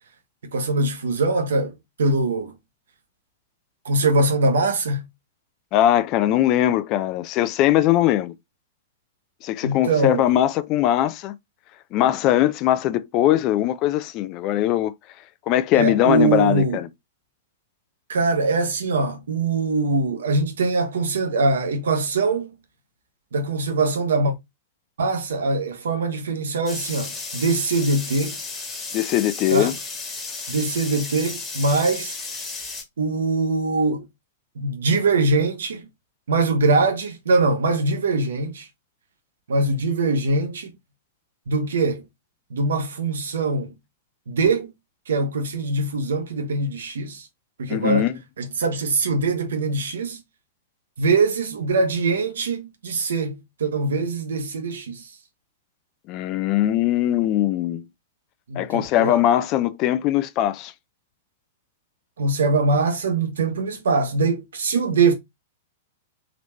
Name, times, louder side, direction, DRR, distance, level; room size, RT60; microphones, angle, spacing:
voice 1, 0.5-2.6 3.8-5.1 9.6-10.3 15.7-16.8 18.1-22.6 23.3-24.3 25.0-28.4 29.5-29.7 30.5-32.2 33.0-34.1 34.6-35.8 36.3-38.7 39.5-40.7 41.5-42.0 42.5-43.7 44.3-44.7 45.1-47.3 47.6-48.1 48.4-50.2 51.0-55.1 58.5-59.2 62.2-65.1, right 3 dB, 65° right, 1.0 m, -22 dB
voice 2, 5.7-8.3 9.4-11.3 11.9-14.9 15.5-16.9 28.9-29.7 47.7-48.1 56.1-57.8 58.6-60.7, left 13 dB, 35° left, 0.4 m, -20 dB
sound 1, 26.7-32.8, left 4 dB, 15° left, 1.4 m, -33 dB
3.9 x 3.0 x 3.1 m
figure-of-eight pair, 100°, 0 cm